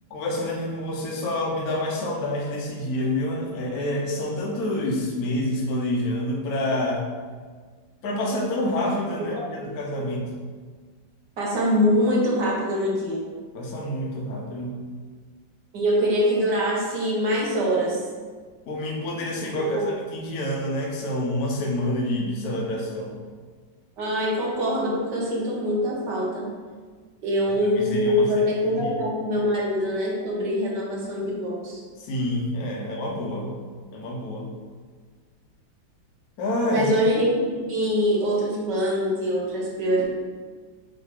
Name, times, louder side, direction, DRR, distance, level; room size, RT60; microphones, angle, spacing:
voice 1, 0.1-7.0 8.0-10.2 13.5-14.8 18.7-23.1 27.7-28.2 28.7-28.9 29.3-29.4 32.0-33.5 33.9-34.5 36.4-36.9, left 1 dB, 55° left, -1 dB, 1.3 m, -28 dB
voice 2, 11.4-13.3 15.7-18.0 19.6-19.9 24.0-26.5 27.2-31.8 36.7-40.0, equal, 65° right, -4 dB, 1.9 m, -24 dB
6.6 x 3.1 x 4.9 m, 1.5 s
omnidirectional pair, 2.0 m